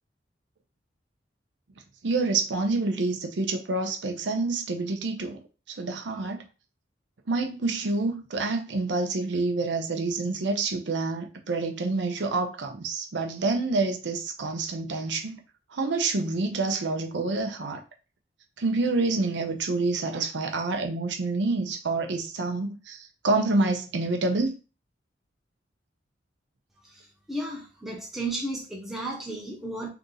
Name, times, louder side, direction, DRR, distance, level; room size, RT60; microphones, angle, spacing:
voice 1, 2.0-6.4 7.3-15.4 15.7-17.8 18.6-24.6, right 3 dB, 80° right, 0.6 m, -27 dB
voice 2, 27.3-29.9, right 2 dB, ahead, 0.8 m, -33 dB
2.9 x 2.6 x 3.8 m
head